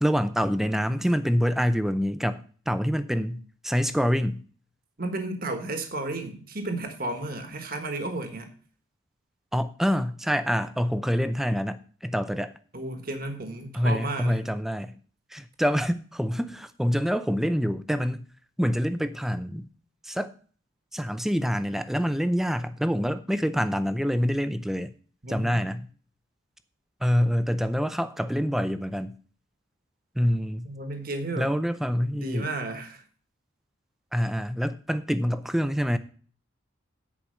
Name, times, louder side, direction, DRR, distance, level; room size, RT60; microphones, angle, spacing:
voice 1, 0.0-4.4 9.5-12.5 13.7-14.9 15.3-18.2 18.6-19.7 20.0-20.3 20.9-24.9 25.3-25.9 27.0-29.1 30.2-30.7 31.4-32.5 34.1-36.0, equal, ahead, 12 dB, 0.5 m, -26 dB
voice 2, 5.0-8.5 12.7-14.4 25.2-25.6 30.6-31.5 32.1-33.0, right 2 dB, 45° right, 6 dB, 1.4 m, -33 dB
10.0 x 5.0 x 6.3 m, 0.43 s
head